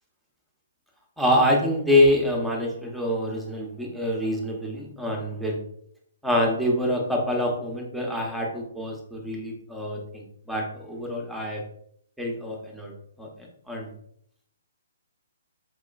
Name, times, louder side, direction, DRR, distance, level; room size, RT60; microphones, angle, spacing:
voice 1, 1.2-5.6 6.2-11.6 12.2-12.9 13.2-13.9, left 1 dB, ahead, -2 dB, 0.8 m, -26 dB
4.8 x 2.8 x 2.4 m, 0.68 s
hypercardioid pair, 145°, 0 cm